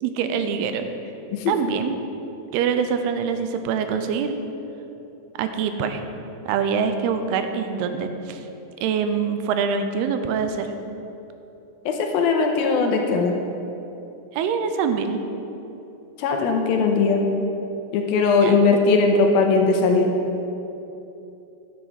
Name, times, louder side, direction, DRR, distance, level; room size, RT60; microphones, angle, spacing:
voice 1, 0.0-0.9 1.5-2.0 2.5-4.4 5.4-6.0 6.5-8.4 8.8-10.7 14.3-15.2 18.4-18.6, right 6 dB, 90° right, 8 dB, 2.7 m, -24 dB
voice 2, 1.3-1.7 11.9-13.4 16.2-17.2 17.9-20.1, left 4 dB, 75° left, 3 dB, 2.5 m, -19 dB
12.0 x 7.6 x 5.6 m, 2.9 s
omnidirectional pair, 4.5 m